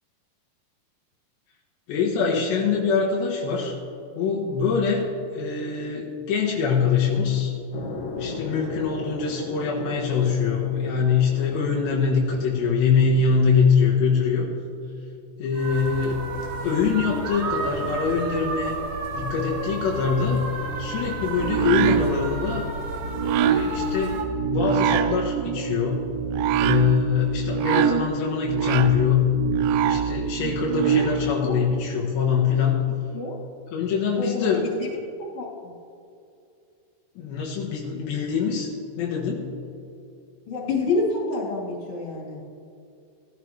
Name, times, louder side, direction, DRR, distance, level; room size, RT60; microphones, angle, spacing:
voice 1, 1.9-3.8 4.1-5.1 5.3-7.5 8.2-14.5 15.4-16.3 16.6-18.7 19.2-20.4 20.8-22.7 23.4-26.1 26.6-29.3 29.9-32.8 33.7-34.6 37.2-38.7 39.0-39.5, left 6 dB, 80° left, -3 dB, 3.4 m, -23 dB
sound 1, 7.7-14.0, left 3 dB, 65° left, 2.8 m, -37 dB
sound 2, 15.5-24.2, right 3 dB, 65° right, 2.9 m, -32 dB
sound 3, 21.4-31.4, right 8 dB, 90° right, 2.9 m, -24 dB
voice 2, 34.2-35.0 35.3-35.7 40.5-42.4, left 3 dB, 35° left, -5 dB, 3.8 m, -28 dB
18.0 x 12.5 x 3.3 m, 2.5 s
omnidirectional pair, 5.1 m